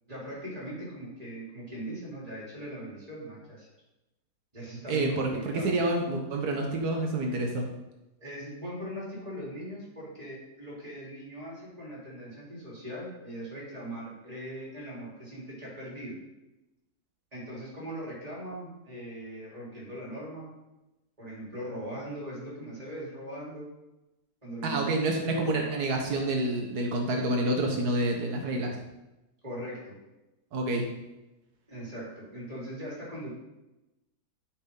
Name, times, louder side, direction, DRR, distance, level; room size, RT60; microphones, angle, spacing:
voice 1, 0.1-3.7 4.5-5.7 8.2-16.2 17.3-20.5 21.2-23.7 24.4-26.3 29.4-30.0 31.7-33.3, right 1 dB, 25° right, -6 dB, 3.8 m, -40 dB
voice 2, 4.9-7.7 24.6-28.8 30.5-30.9, right 2 dB, 90° right, 1 dB, 1.7 m, -28 dB
12.0 x 6.2 x 3.9 m, 0.98 s
omnidirectional pair, 1.6 m